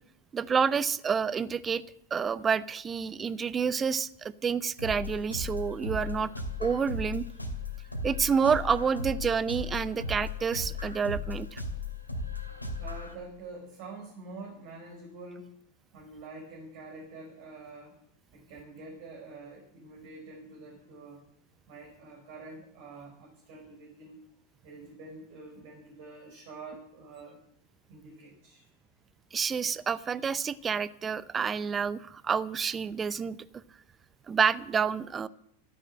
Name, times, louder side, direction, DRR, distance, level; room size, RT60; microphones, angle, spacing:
voice 1, 0.3-1.8 2.1-6.3 6.6-7.2 8.0-11.6 29.3-33.4 34.3-35.3, right 6 dB, 20° right, 18 dB, 0.7 m, -28 dB
sound 1, 4.8-13.1, left 3 dB, 85° left, 2.3 m, -36 dB
voice 2, 12.8-15.6 15.9-18.0 18.3-21.2 21.7-24.2 24.6-27.4 27.9-28.7, right 3 dB, 45° right, -1 dB, 4.5 m, -46 dB
14.0 x 10.0 x 7.5 m, 0.73 s
figure-of-eight pair, 90°, 0 cm